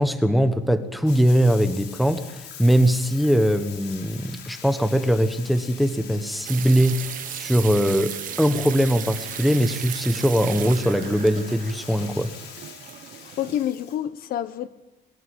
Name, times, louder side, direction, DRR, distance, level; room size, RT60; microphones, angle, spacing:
voice 1, 0.0-8.1 8.4-12.3, equal, ahead, 10 dB, 1.3 m, -21 dB
Bathtub (filling or washing), 1.0-14.0, left 7 dB, 80° left, 5.6 m, -43 dB
sound 1, 6.4-13.7, right 11 dB, 50° right, 1.3 m, -36 dB
voice 2, 13.1-14.7, left 11 dB, 55° left, 14 dB, 1.1 m, -28 dB
23.0 x 21.0 x 8.7 m, 1.0 s
cardioid pair, 175°, 18 cm